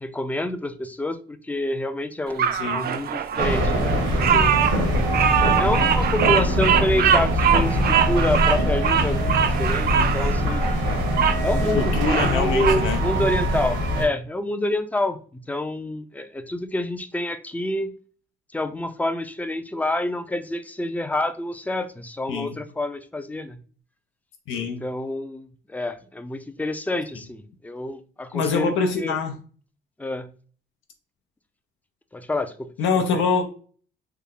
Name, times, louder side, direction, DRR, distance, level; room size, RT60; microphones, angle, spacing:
voice 1, 0.0-4.5 5.4-10.7 11.4-17.9 18.5-23.6 24.6-29.2 30.0-30.3 32.1-32.7 33.1-33.2, left 1 dB, 10° left, 9 dB, 0.4 m, -28 dB
Bird vocalization bird call bird song, 2.4-11.4 11.8-12.8, right 8 dB, 50° right, 0.4 m, -23 dB
voice 2, 2.5-2.8 11.7-13.0 22.3-22.5 24.5-24.8 28.3-29.3 32.8-33.4, left 5 dB, 85° left, 4 dB, 0.6 m, -24 dB
sound 1, 3.4-14.0, equal, 85° right, 1.1 m, -23 dB
3.3 x 2.1 x 3.7 m, 0.41 s
cardioid pair, 90°, 20 cm